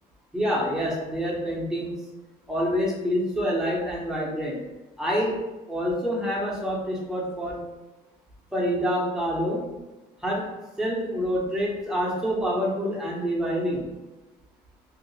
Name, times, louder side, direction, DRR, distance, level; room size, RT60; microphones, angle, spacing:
voice 1, 0.3-1.9 2.5-4.6 5.0-5.3 5.7-7.6 8.5-9.6 10.2-10.5 10.8-13.9, equal, 5° right, -5 dB, 1.1 m, -27 dB
2.8 x 2.5 x 4.1 m, 1.1 s
cardioid pair, 110°, 17 cm